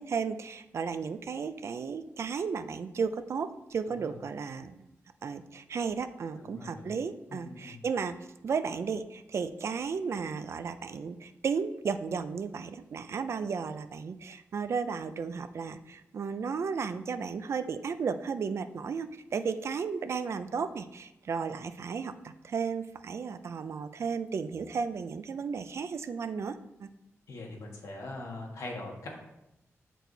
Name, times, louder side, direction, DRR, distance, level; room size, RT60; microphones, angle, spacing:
voice 1, 0.0-4.9 5.2-8.2 8.4-26.9, right 5 dB, 60° right, 11 dB, 0.4 m, -34 dB
voice 2, 6.4-7.0 7.3-7.8 27.3-29.1, left 2 dB, 80° left, 0 dB, 1.6 m, -42 dB
8.0 x 4.6 x 4.0 m, 0.88 s
wide cardioid pair, 110°, 5 cm